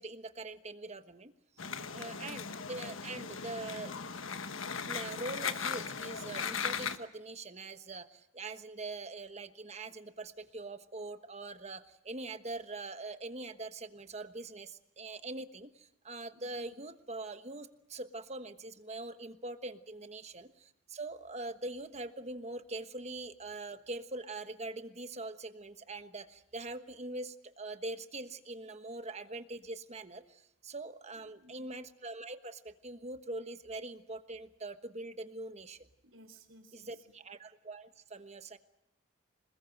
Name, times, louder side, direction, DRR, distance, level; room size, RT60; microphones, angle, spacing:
voice 1, 0.0-1.3 1.9-3.9 4.8-35.9 36.7-38.6, right 2 dB, 30° right, 10 dB, 1.2 m, -43 dB
sound 1, 1.6-7.0, left 6 dB, 75° left, 1.3 m, -38 dB
voice 2, 1.7-2.4 16.3-16.7 31.2-31.7 36.0-37.0, equal, 70° right, 8 dB, 3.9 m, -58 dB
26.5 x 21.0 x 7.9 m, 0.80 s
head